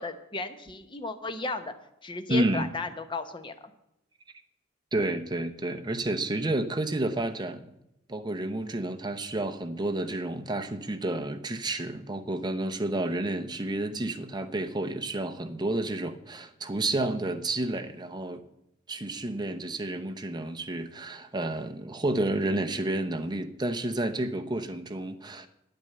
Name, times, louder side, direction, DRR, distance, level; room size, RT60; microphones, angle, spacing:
voice 1, 0.0-1.7 2.0-3.5, left 3 dB, 25° left, 8 dB, 0.9 m, -34 dB
voice 2, 2.3-2.7 4.9-7.7 8.1-18.4 18.9-25.5, right 2 dB, 20° right, 6 dB, 0.8 m, -30 dB
9.6 x 9.0 x 6.7 m, 0.83 s
head